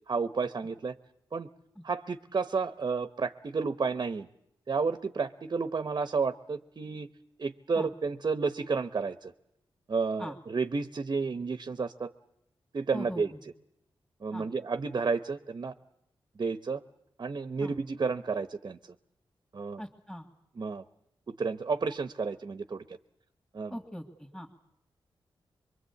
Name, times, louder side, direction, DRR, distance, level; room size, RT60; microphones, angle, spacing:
voice 1, 0.1-1.0 1.3-1.5 1.8-4.3 4.7-7.1 7.4-9.3 9.9-12.1 12.7-13.3 14.2-15.7 16.4-16.8 17.2-18.9 19.5-19.8 20.6-20.8 21.3-23.0 23.5-23.8, right 4 dB, 45° right, 11 dB, 0.9 m, -31 dB
voice 2, 12.9-13.4 14.3-14.5 17.6-17.7 19.8-20.3 23.7-24.5, equal, 5° left, 0 dB, 2.3 m, -40 dB
24.0 x 23.5 x 8.4 m, 0.77 s
wide cardioid pair, 90°, 9 cm